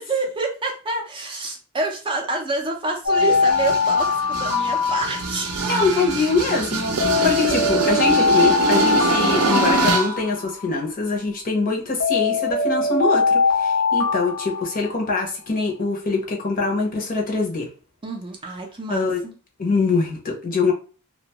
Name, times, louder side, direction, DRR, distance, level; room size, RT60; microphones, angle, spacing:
voice 1, 0.0-5.7 18.0-19.4, right 3 dB, 20° right, 1 dB, 0.5 m, -28 dB
Alarm, 3.0-5.7 7.0-10.7 12.0-15.2, left 4 dB, 70° left, 1.0 m, -21 dB
sound 1, 3.2-10.2, right 4 dB, 85° right, 0.6 m, -24 dB
voice 2, 5.7-17.7 18.9-19.2 19.6-20.7, left 3 dB, 40° left, 1 dB, 0.7 m, -23 dB
2.5 x 2.2 x 2.8 m, 0.36 s
head